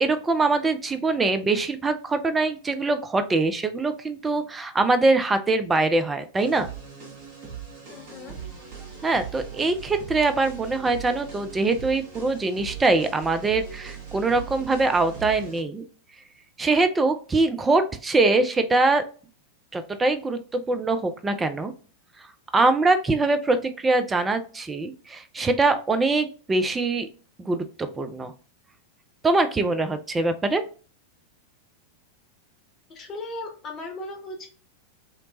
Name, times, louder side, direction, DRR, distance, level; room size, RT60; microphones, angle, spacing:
voice 1, 0.0-6.7 9.0-15.8 16.6-19.0 19.7-21.7 22.5-27.1 27.4-28.3 29.2-30.6, right 3 dB, 15° right, 9 dB, 0.3 m, -23 dB
sound 1, 6.4-15.6, right 7 dB, 40° right, 1.2 m, -40 dB
voice 2, 7.9-8.3 32.9-34.5, left 2 dB, 30° left, 2 dB, 0.9 m, -37 dB
2.8 x 2.1 x 2.7 m, 0.39 s
figure-of-eight pair, 90°, 0 cm